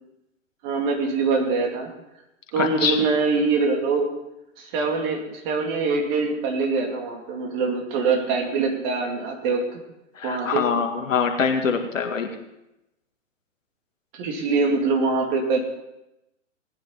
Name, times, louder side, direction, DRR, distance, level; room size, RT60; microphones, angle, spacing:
voice 1, 0.6-1.9 2.5-4.1 4.6-9.8 10.2-10.6 14.2-15.6, right 4 dB, 40° right, 2 dB, 2.6 m, -24 dB
voice 2, 2.6-3.0 10.2-12.3, left 6 dB, 75° left, 3 dB, 2.0 m, -24 dB
18.5 x 10.0 x 4.0 m, 0.90 s
hypercardioid pair, 120°, 39 cm